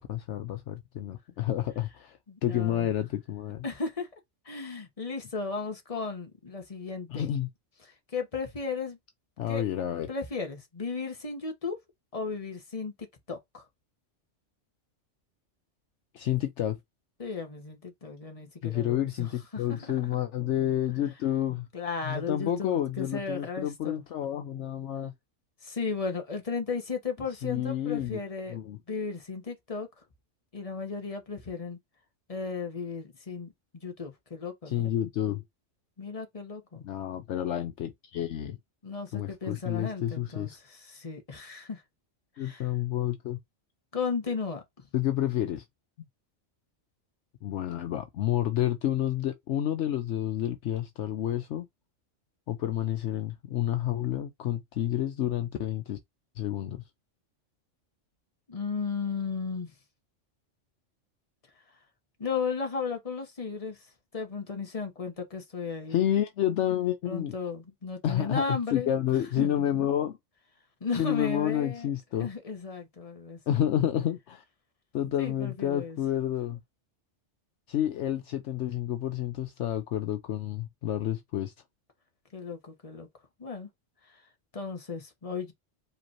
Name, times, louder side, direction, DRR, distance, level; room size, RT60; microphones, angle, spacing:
voice 1, 0.0-3.6 7.1-7.5 9.4-10.1 16.1-16.8 18.6-21.7 22.0-25.1 27.4-28.2 28.5-28.8 34.7-35.4 36.8-38.6 39.1-40.6 42.4-43.4 44.9-45.6 47.4-51.7 52.5-56.0 56.4-56.8 65.9-67.3 68.0-70.2 71.0-72.3 73.5-74.4 74.9-76.6 77.7-81.5, left 11 dB, 70° left, 0.9 m, -29 dB
voice 2, 2.3-2.9 3.6-4.1 4.4-7.3 7.8-9.0 9.5-9.6 10.1-11.8 12.1-13.6 17.2-19.9 21.7-24.0 25.6-29.9 30.5-31.8 32.3-34.9 36.0-36.8 38.8-41.8 42.4-42.7 43.9-44.6 58.5-59.7 62.2-63.8 64.1-66.1 67.1-68.9 69.4-69.5 70.8-71.9 72.2-73.7 75.2-76.0 82.3-83.1 83.4-83.7 84.1-84.2 84.5-85.5, left 4 dB, 30° left, 1.3 m, -35 dB
4.9 x 3.2 x 2.9 m
omnidirectional pair, 1.3 m